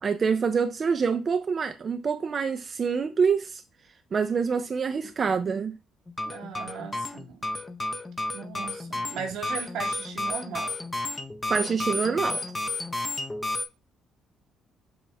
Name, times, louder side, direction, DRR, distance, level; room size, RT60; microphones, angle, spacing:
voice 1, 0.0-3.6 4.1-5.8 11.5-12.5, right 5 dB, 35° right, 0.3 m, -26 dB
sound 1, 6.1-13.7, left 2 dB, 20° left, 0.5 m, -32 dB
voice 2, 6.2-7.5 8.3-10.7, right 7 dB, 80° right, 1.0 m, -37 dB
6.9 x 2.4 x 3.2 m
cardioid pair, 110°, 0 cm